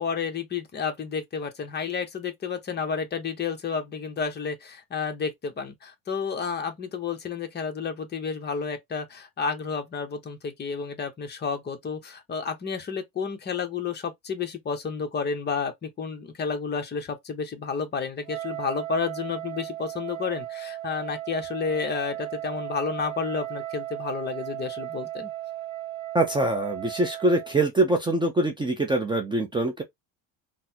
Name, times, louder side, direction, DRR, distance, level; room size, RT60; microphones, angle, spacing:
voice 1, 0.0-25.3, left 5 dB, 25° left, 0.8 m, -31 dB
Wind instrument woodwind instrument, 18.2-27.6, right 14 dB, 45° right, 0.8 m, -36 dB
voice 2, 26.1-29.8, right 2 dB, 10° right, 0.5 m, -24 dB
3.9 x 2.0 x 2.8 m
supercardioid pair, 115°, 40 cm